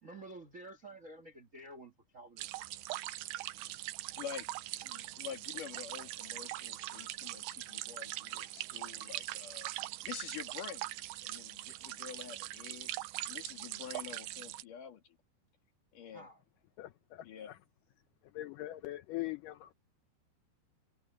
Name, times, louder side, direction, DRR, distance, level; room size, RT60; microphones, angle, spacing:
voice 1, 0.0-2.5 16.1-16.4, right 2 dB, 65° right, 0.7 m, -51 dB
sound 1, 2.4-14.7, right 16 dB, 80° right, 2.7 m, -42 dB
voice 2, 4.2-9.7 10.0-12.9 13.3-15.2 15.9-16.3 17.2-17.5, left 8 dB, 55° left, 3.4 m, -47 dB
voice 3, 16.8-17.6 18.3-19.7, left 16 dB, 90° left, 1.8 m, -42 dB
omnidirectional pair, 4.7 m